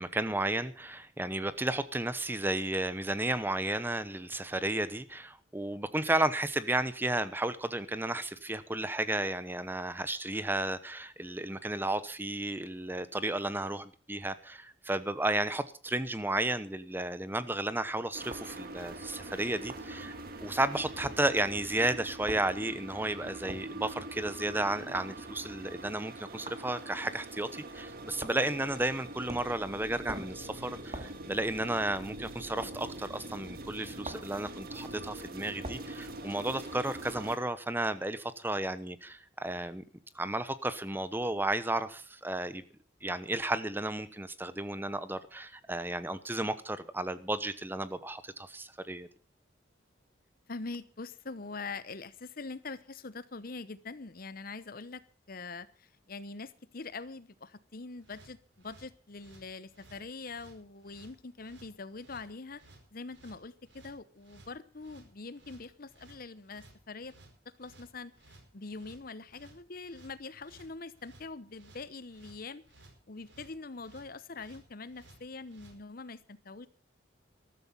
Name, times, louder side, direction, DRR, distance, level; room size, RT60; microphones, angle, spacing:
voice 1, 0.0-20.1 20.4-39.8 40.1-42.6 43.0-49.1, right 1 dB, 10° right, 1.0 m, -33 dB
sound 1, 18.1-37.4, right 2 dB, 55° right, 2.3 m, -44 dB
sound 2, 18.3-18.5 19.7-19.9 21.0-21.2 22.3-22.5 23.5-23.7 24.9-25.2 26.5-26.6 28.2-28.5 29.3-29.6 30.1-30.4 30.9-31.2 32.6-32.8 34.0-34.3 35.6-35.9, right 2 dB, 35° right, 2.1 m, -43 dB
voice 2, 50.5-55.0 55.3-62.6 62.9-67.1 67.6-72.6 73.1-76.7, left 3 dB, 50° left, 0.9 m, -44 dB
sound 3, 58.0-75.8, right 2 dB, 70° right, 4.8 m, -58 dB
14.0 x 13.5 x 5.5 m
head